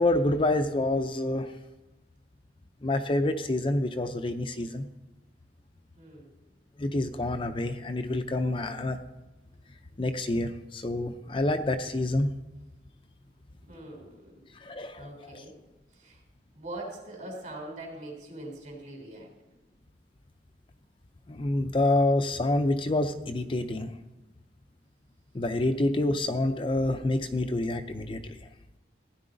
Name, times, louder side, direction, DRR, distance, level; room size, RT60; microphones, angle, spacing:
voice 1, 0.0-1.5 2.8-4.9 6.8-9.0 10.0-12.3 14.6-15.4 21.3-23.9 25.3-28.4, left 2 dB, 30° left, 8 dB, 0.5 m, -27 dB
voice 2, 6.0-6.3 13.6-14.4 14.9-15.5 15.9-16.2 16.5-19.3 25.7-25.8, right 1 dB, 45° right, 1 dB, 3.4 m, -42 dB
16.0 x 10.0 x 3.9 m, 1.1 s
head